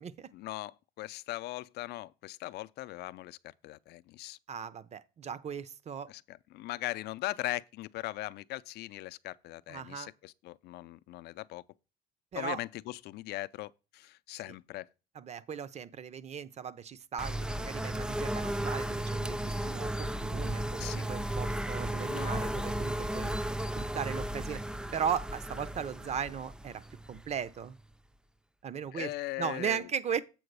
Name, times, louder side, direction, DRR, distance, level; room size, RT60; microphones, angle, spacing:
voice 1, 0.3-4.4 6.1-11.6 12.4-14.9 20.8-21.1 22.0-22.6 28.9-29.9, left 17 dB, 75° left, 0.4 m, -40 dB
voice 2, 4.5-6.1 9.7-10.1 12.3-12.6 14.5-14.6 15.2-24.6 24.9-26.8 27.1-27.8 28.6-29.1 29.4-30.2, right 7 dB, 40° right, 0.6 m, -37 dB
sound 1, 17.2-27.8, right 1 dB, 5° right, 0.4 m, -34 dB
7.8 x 3.9 x 6.7 m
cardioid pair, 110°, 17 cm